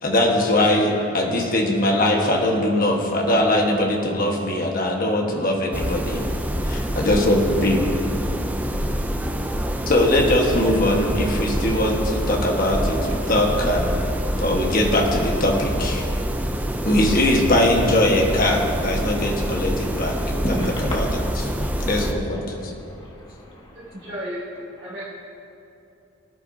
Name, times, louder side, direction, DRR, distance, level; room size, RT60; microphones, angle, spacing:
voice 1, 0.0-6.2 6.6-7.8 9.9-14.1 14.4-16.1 16.8-21.1 21.8-22.7, left 1 dB, 45° left, 0 dB, 1.3 m, -21 dB
sound 1, 5.7-22.1, equal, 10° right, 0.4 m, -26 dB
voice 2, 20.1-21.9 22.2-24.1 24.8-25.0, equal, 25° left, -4 dB, 1.8 m, -34 dB
voice 3, 23.9-24.5 24.7-25.0, equal, 45° right, -11 dB, 2.6 m, -32 dB
18.5 x 10.5 x 2.7 m, 2.8 s
head